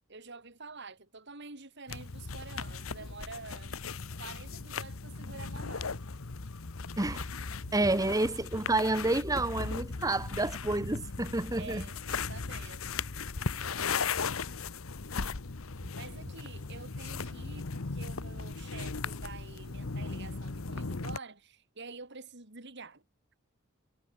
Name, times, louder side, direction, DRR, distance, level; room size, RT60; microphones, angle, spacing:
voice 1, 0.1-3.8 4.2-6.1 11.6-13.0 15.9-23.0, right 4 dB, 55° right, 3.3 m, -48 dB
sound 1, 1.9-21.2, left 4 dB, 85° left, 1.1 m, -37 dB
voice 2, 7.0-7.3 7.7-11.8, right 2 dB, 15° right, 1.0 m, -29 dB
head